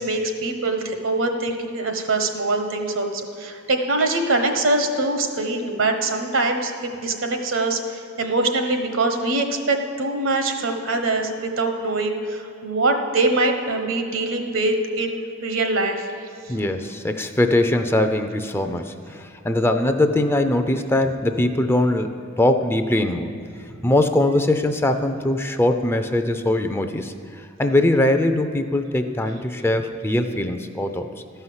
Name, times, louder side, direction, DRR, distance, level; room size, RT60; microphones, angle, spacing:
voice 1, 0.0-16.1, right 2 dB, 75° right, 5 dB, 1.2 m, -23 dB
voice 2, 16.5-22.1 22.4-23.3 23.8-31.1, left 1 dB, 10° left, 7 dB, 0.4 m, -21 dB
12.5 x 5.6 x 7.9 m, 2.6 s
head